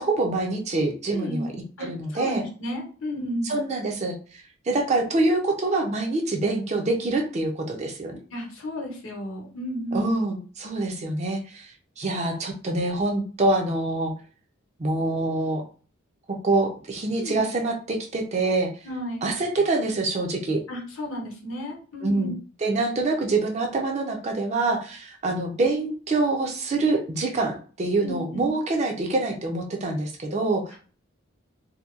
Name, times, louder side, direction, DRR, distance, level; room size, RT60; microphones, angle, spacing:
voice 1, 0.0-1.5 1.8-2.4 3.4-8.2 9.9-14.1 14.8-15.6 16.4-18.7 19.2-20.6 22.0-22.3 22.6-30.7, right 2 dB, 35° right, 3 dB, 0.4 m, -25 dB
voice 2, 1.1-1.5 1.8-3.6 8.3-10.2 17.2-17.4 18.8-19.3 20.7-22.3 28.0-28.5, equal, 75° left, 0 dB, 0.8 m, -33 dB
2.7 x 2.1 x 2.3 m, 0.40 s
head